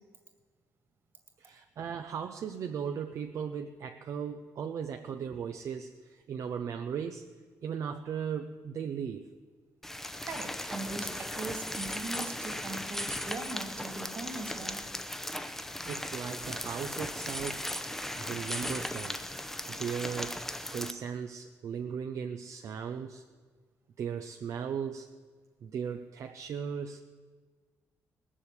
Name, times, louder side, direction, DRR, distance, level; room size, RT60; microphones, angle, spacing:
voice 1, 1.4-7.3 7.6-9.3 15.9-17.7 18.2-19.2 19.7-23.2 24.0-25.1 25.6-27.0, right 7 dB, 60° right, 6 dB, 0.7 m, -37 dB
sound 1, 9.8-20.9, left 1 dB, 5° left, 0.7 m, -37 dB
voice 2, 10.2-14.8, right 3 dB, 40° right, 4 dB, 2.4 m, -40 dB
19.0 x 7.4 x 8.4 m, 1.5 s
cardioid pair, 135°, 6 cm